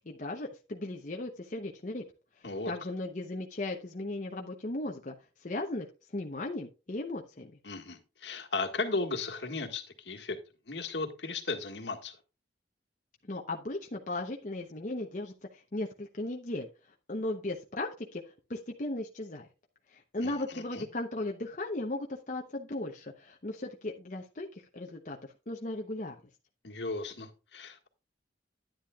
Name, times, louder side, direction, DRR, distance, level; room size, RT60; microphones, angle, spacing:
voice 1, 0.1-2.0 2.7-5.1 5.4-5.9 6.1-7.5 13.3-16.7 17.1-18.2 18.5-19.5 19.9-24.5 24.7-26.2, left 2 dB, 40° left, 0.8 m, -36 dB
voice 2, 7.6-10.4 10.7-12.2 20.2-20.8 26.6-27.9, left 3 dB, 70° left, 1.6 m, -36 dB
10.5 x 10.0 x 2.3 m
head